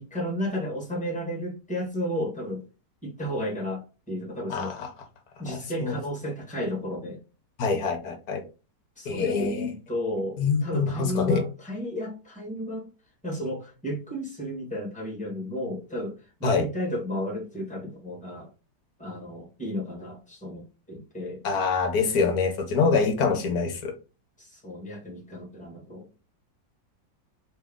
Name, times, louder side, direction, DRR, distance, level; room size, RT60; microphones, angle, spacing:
voice 1, 0.0-2.6 3.0-4.7 5.4-7.2 9.0-12.9 13.2-18.5 19.0-21.4 24.4-26.1, left 1 dB, 5° left, 1.6 m, -33 dB
voice 2, 4.5-4.9 5.5-6.0 7.6-8.4 9.0-9.7 10.4-11.4 16.4-16.6 21.4-23.9, left 4 dB, 60° left, 1.3 m, -25 dB
3.6 x 3.4 x 3.6 m
omnidirectional pair, 2.0 m